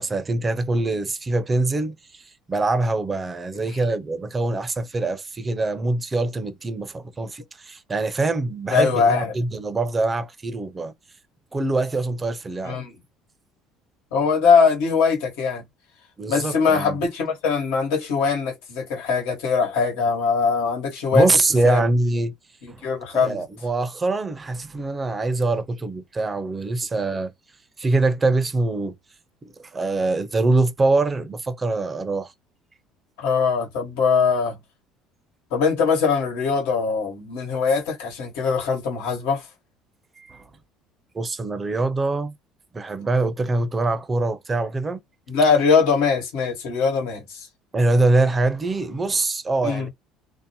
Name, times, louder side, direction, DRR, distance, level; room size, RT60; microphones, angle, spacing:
voice 1, 0.0-2.2 2.5-10.9 11.5-12.8 16.2-17.0 21.1-22.3 22.7-22.9 23.1-27.3 27.8-28.9 29.6-32.3 40.2-40.4 41.1-42.3 42.7-45.0 47.7-49.9, right 2 dB, 20° right, 0.4 m, -23 dB
voice 2, 8.7-9.3 12.6-12.9 14.1-15.6 16.3-21.3 21.6-21.8 22.6-23.4 33.2-34.6 35.5-39.5 45.3-47.5 49.6-49.9, left 5 dB, 90° left, 1.3 m, -21 dB
2.6 x 2.1 x 2.7 m
cardioid pair, 120°, 0 cm